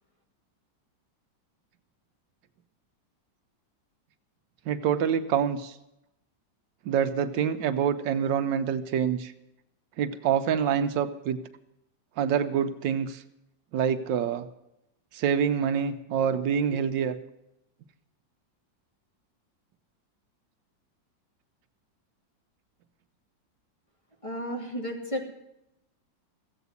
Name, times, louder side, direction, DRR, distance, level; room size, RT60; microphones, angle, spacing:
voice 1, 4.7-5.7 6.9-9.3 10.0-11.4 12.2-13.2 13.7-14.5 15.1-17.2, right 8 dB, 80° right, 10 dB, 1.4 m, -26 dB
voice 2, 24.2-25.3, equal, 15° left, -1 dB, 2.5 m, -33 dB
15.0 x 8.1 x 9.5 m, 0.86 s
omnidirectional pair, 2.0 m